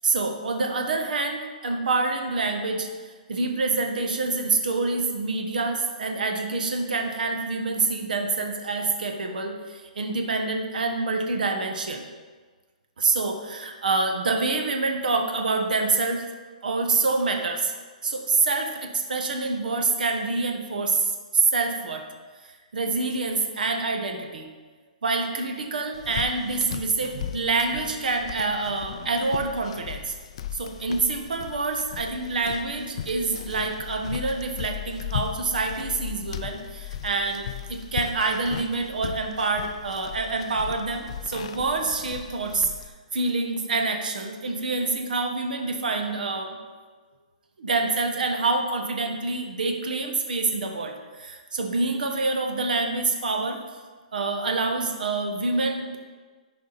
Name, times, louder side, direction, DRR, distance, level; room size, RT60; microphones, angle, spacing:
voice 1, 0.0-2.9 3.3-12.0 13.0-16.2 16.6-17.7 18.0-22.0 22.4-24.5 25.0-30.1 30.5-42.7 43.1-46.6 47.6-53.6 54.1-56.0, right 3 dB, 80° right, 3 dB, 1.4 m, -26 dB
sound 1, 25.9-42.9, left 9 dB, 40° left, 0.4 m, -37 dB
13.0 x 5.0 x 4.2 m, 1.4 s
hypercardioid pair, 175°, 5 cm